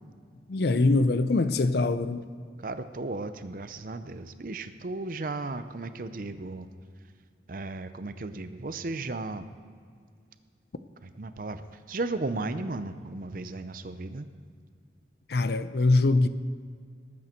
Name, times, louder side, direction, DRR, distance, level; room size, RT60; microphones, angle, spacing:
voice 1, 0.5-2.2 15.3-16.3, left 2 dB, 65° left, 0.5 m, -23 dB
voice 2, 2.6-6.7 7.5-9.5 11.0-11.6 11.9-14.3, right 2 dB, 50° right, 0.6 m, -35 dB
19.0 x 8.5 x 4.5 m
head